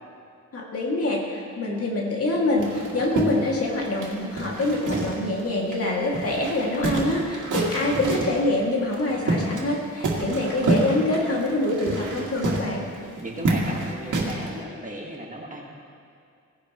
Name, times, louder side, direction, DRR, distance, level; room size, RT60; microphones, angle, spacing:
voice 1, 0.5-12.8, left 2 dB, 50° left, -3 dB, 2.4 m, -25 dB
sound 1, 2.6-5.4 5.7-5.8 6.1-8.4 8.9-9.7 10.0-14.5, right 2 dB, 75° right, 2.1 m, -27 dB
voice 2, 13.0-15.7, right 1 dB, 25° right, -2 dB, 1.7 m, -36 dB
18.0 x 9.8 x 3.1 m, 2.4 s
wide cardioid pair, 110°, 31 cm